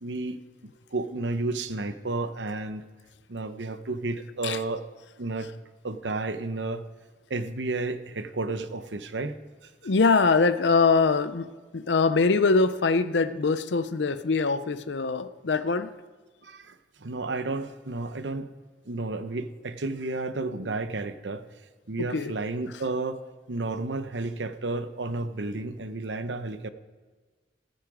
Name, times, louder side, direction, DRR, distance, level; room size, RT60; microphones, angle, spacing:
voice 1, 0.0-0.4 0.9-2.8 3.3-4.8 5.2-5.5 5.8-6.9 7.3-9.4 9.6-9.7 16.4-18.5 18.8-21.4 21.9-23.2 23.5-26.7, right 2 dB, 85° right, 11 dB, 0.9 m, -32 dB
voice 2, 9.8-15.9 22.1-22.3, left 4 dB, 75° left, 11 dB, 0.6 m, -23 dB
14.5 x 14.0 x 5.0 m, 1.4 s
head